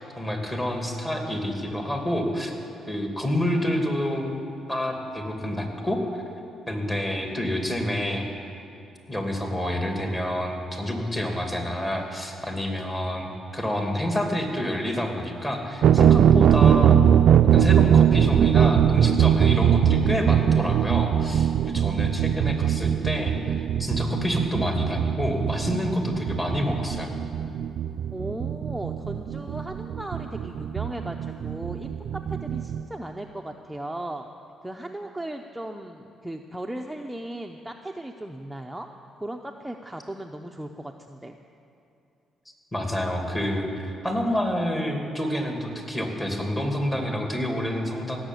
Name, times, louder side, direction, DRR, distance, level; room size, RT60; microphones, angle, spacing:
voice 1, 0.0-2.5 2.9-4.4 4.7-6.2 6.7-8.3 9.1-17.0 17.5-23.3 23.8-27.1 42.7-48.2, left 1 dB, 20° left, 2 dB, 2.5 m, -28 dB
sound 1, 15.8-32.8, right 9 dB, 70° right, 0.4 m, -21 dB
voice 2, 28.1-34.3 34.6-38.9 39.2-41.4, right 1 dB, 5° right, 2 dB, 0.6 m, -36 dB
17.0 x 7.2 x 9.2 m, 2.7 s
cardioid pair, 90°, 0 cm